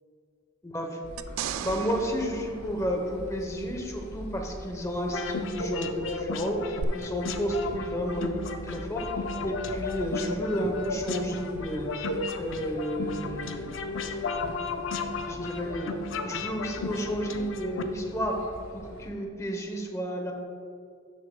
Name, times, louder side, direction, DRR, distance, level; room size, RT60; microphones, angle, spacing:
sound 1, 1.0-19.1, left 1 dB, 80° left, 1.2 m, -45 dB
sound 2, 1.2-3.7 6.8-6.9, right 9 dB, 70° right, 0.3 m, -37 dB
voice 1, 1.6-9.0 9.4-14.1 14.4-14.8 15.2-15.9 16.2-18.3 18.7-20.3, equal, 15° left, 2 dB, 0.8 m, -32 dB
sound 3, 5.1-17.8, left 3 dB, 65° left, 0.5 m, -34 dB
12.0 x 6.6 x 2.2 m, 2.3 s
head